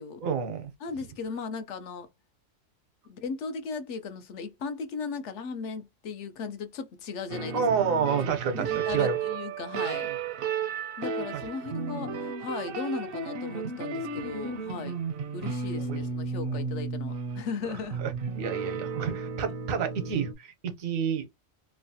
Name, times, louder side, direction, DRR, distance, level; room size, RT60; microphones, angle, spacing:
voice 1, 0.2-0.7 7.5-9.2 12.0-12.1 13.9-14.2 15.8-16.0 16.4-16.6 17.6-18.1 18.4-21.4, right 6 dB, 85° right, 1.2 m, -30 dB
voice 2, 0.8-2.1 3.1-7.6 8.5-10.1 11.0-15.0 15.3-18.0, left 5 dB, 70° left, 0.8 m, -37 dB
sound 1, 7.3-20.3, right 5 dB, 60° right, 0.6 m, -33 dB
3.1 x 2.2 x 2.6 m
omnidirectional pair, 1.4 m